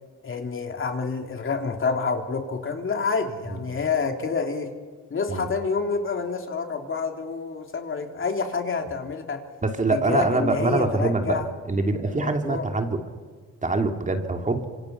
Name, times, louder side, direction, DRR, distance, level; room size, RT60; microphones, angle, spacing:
voice 1, 0.2-4.7 5.1-9.4 9.9-11.5 12.0-12.7, left 5 dB, 45° left, 4 dB, 3.3 m, -28 dB
voice 2, 9.6-11.4 11.7-13.0 13.6-14.6, right 3 dB, 25° right, 4 dB, 2.9 m, -24 dB
27.0 x 26.0 x 5.9 m, 1.5 s
cardioid pair, 90°, 30 cm